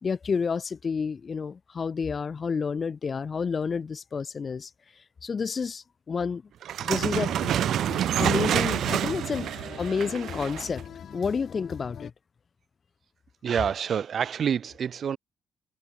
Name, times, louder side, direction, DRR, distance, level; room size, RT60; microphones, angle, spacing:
voice 1, 0.0-4.7 5.2-6.4 6.8-7.3 8.2-10.8 11.1-12.1, left 5 dB, 40° left, 1.9 m, -30 dB
sound 1, 6.6-10.8, right 11 dB, 70° right, 2.6 m, -27 dB
sound 2, 6.9-12.1, left 8 dB, 60° left, 2.9 m, -42 dB
voice 2, 13.4-15.2, right 7 dB, 55° right, 4.0 m, -27 dB
cardioid pair, 90°, 0 cm